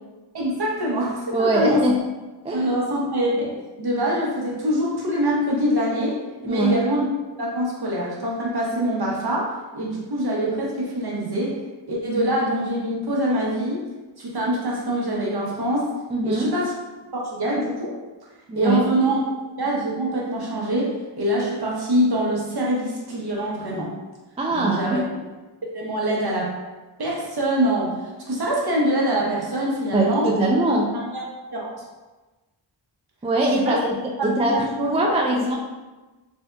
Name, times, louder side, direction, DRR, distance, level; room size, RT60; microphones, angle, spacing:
voice 1, 0.3-1.9 2.5-7.1 7.4-11.6 11.9-13.9 14.2-15.9 16.2-16.7 17.1-18.0 18.5-19.2 19.6-23.9 24.5-25.0 25.6-26.6 27.0-28.0 28.3-30.3 30.9-31.2 31.5-31.7 33.4-33.8 34.2-35.4, equal, 50° right, -3 dB, 0.9 m, -24 dB
voice 2, 1.3-1.9 2.4-2.7 6.5-6.8 16.1-16.5 18.5-18.8 24.4-25.0 29.9-30.9 33.2-34.0 34.2-35.6, right 2 dB, 15° right, -2 dB, 0.3 m, -22 dB
3.6 x 2.6 x 2.2 m, 1.2 s
wide cardioid pair, 60°, 48 cm